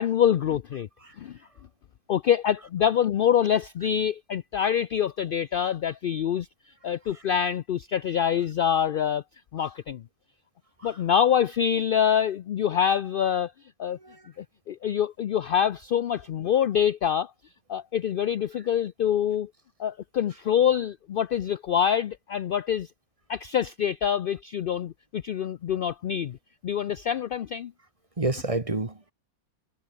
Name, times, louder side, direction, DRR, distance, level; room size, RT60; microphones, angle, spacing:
voice 1, 0.0-0.9 1.2-1.4 2.1-6.5 6.8-9.2 9.5-10.0 10.8-13.5 13.8-14.0 14.4-17.3 17.7-19.5 19.8-22.9 23.3-26.4 26.6-27.7, left 9 dB, 70° left, 0.5 m, -25 dB
voice 2, 28.2-29.1, right 2 dB, 25° right, 1.6 m, -30 dB
omnidirectional pair, 1.5 m